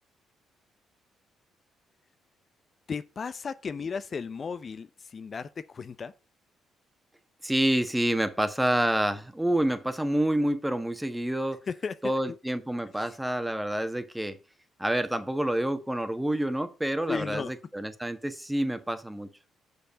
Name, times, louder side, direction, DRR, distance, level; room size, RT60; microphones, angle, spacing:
voice 1, 2.9-6.1 11.7-12.1 13.0-13.2 17.1-17.5, left 5 dB, 45° left, 0.5 m, -35 dB
voice 2, 7.4-11.6 12.0-14.4 14.8-19.3, right 1 dB, 5° right, 1.3 m, -28 dB
6.5 x 5.2 x 6.5 m
hypercardioid pair, 50°, 0 cm